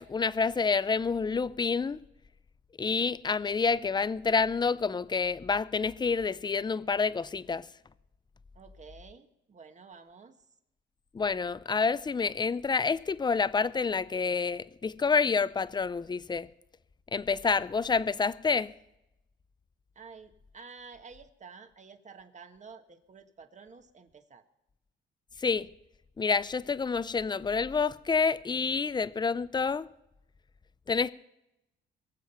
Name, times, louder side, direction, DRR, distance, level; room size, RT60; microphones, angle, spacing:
voice 1, 0.0-2.0 2.8-7.7 11.1-16.5 17.1-18.7 25.4-25.7 26.2-29.9 30.9-31.1, left 5 dB, 20° left, 0.5 m, -28 dB
voice 2, 8.5-10.4 19.9-24.4, right 5 dB, 35° right, 1.5 m, -51 dB
22.5 x 7.6 x 5.7 m
cardioid pair, 90°, 20 cm